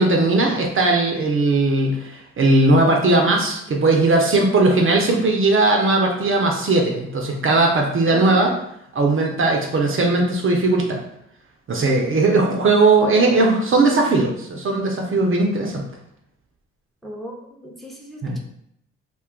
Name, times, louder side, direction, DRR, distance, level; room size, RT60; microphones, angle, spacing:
voice 1, 0.0-8.5 8.9-11.0 11.7-15.8 18.2-18.4, right 2 dB, 45° right, 1 dB, 0.6 m, -18 dB
voice 2, 17.0-17.3 17.6-18.4, equal, ahead, -1 dB, 0.7 m, -37 dB
2.4 x 2.3 x 3.6 m, 0.75 s
supercardioid pair, 50°, 29 cm